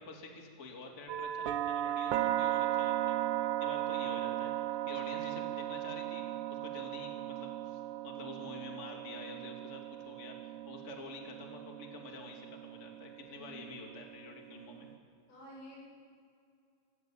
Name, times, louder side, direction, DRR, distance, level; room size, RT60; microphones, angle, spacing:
voice 1, 0.0-3.2 3.6-4.5 4.8-6.2 6.5-14.9, left 3 dB, 25° left, 1 dB, 1.5 m, -48 dB
sound 1, 1.1-15.0, right 13 dB, 75° right, 2.9 m, -37 dB
voice 2, 13.3-13.6 15.3-15.8, equal, 60° left, -4 dB, 9.6 m, -51 dB
27.0 x 16.5 x 8.9 m, 2.3 s
omnidirectional pair, 5.7 m